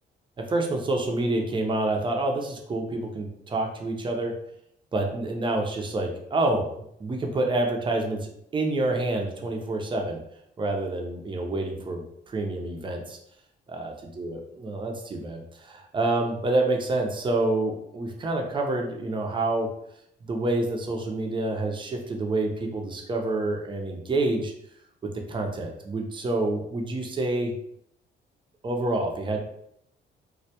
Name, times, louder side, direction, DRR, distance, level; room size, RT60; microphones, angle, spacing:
voice 1, 0.4-4.3 4.9-6.7 7.0-10.2 10.6-13.2 13.7-19.7 20.2-24.5 25.0-27.5 28.6-29.4, right 2 dB, 25° right, 2 dB, 0.5 m, -28 dB
2.1 x 2.1 x 2.7 m, 0.73 s
cardioid pair, 90°, 20 cm